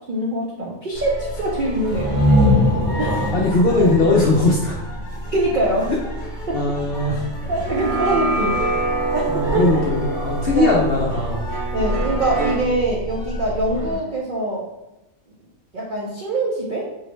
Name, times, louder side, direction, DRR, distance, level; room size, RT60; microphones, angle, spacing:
voice 1, 0.1-2.2 3.0-3.2 5.3-5.9 6.5-6.6 7.5-8.6 9.1-9.6 10.5-10.8 11.7-14.6 15.7-16.8, right 1 dB, 75° right, -3 dB, 0.4 m, -23 dB
sound 1, 0.9-14.0, equal, 40° left, 0.8 m, -30 dB
sound 2, 1.9-5.6, left 1 dB, 10° left, 0.6 m, -21 dB
voice 2, 3.3-4.7 6.5-7.2 9.3-11.4, left 2 dB, 65° left, -3 dB, 0.6 m, -19 dB
sound 3, 7.4-12.6, right 2 dB, 50° right, 0.8 m, -26 dB
3.9 x 2.1 x 3.0 m, 0.93 s
omnidirectional pair, 1.4 m